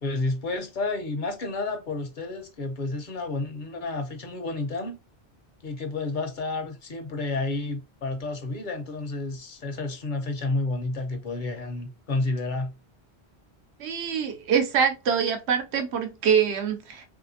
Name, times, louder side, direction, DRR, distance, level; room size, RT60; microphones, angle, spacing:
voice 1, 0.0-5.0 5.6-12.7, left 2 dB, 55° left, 0.7 m, -30 dB
voice 2, 13.8-17.0, right 7 dB, 80° right, 1.0 m, -24 dB
3.1 x 2.8 x 2.6 m
omnidirectional pair, 1.1 m